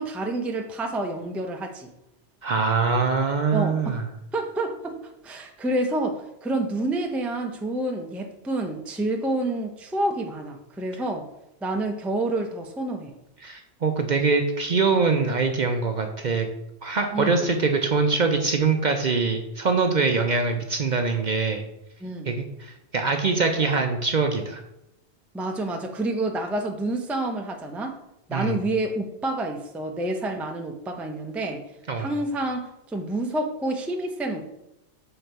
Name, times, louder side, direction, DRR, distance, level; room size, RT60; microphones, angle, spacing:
voice 1, 0.0-1.9 3.5-4.0 4.3-11.3 11.6-13.1 17.1-17.4 22.0-22.3 23.6-23.7 25.3-28.0 28.3-31.6 31.9-34.5, right 2 dB, ahead, 3 dB, 0.5 m, -28 dB
voice 2, 2.4-4.0 13.4-16.5 16.8-21.6 22.2-24.6 28.3-28.6 31.9-32.1, right 4 dB, 50° right, 5 dB, 0.6 m, -23 dB
6.7 x 3.9 x 4.5 m, 0.87 s
omnidirectional pair, 1.2 m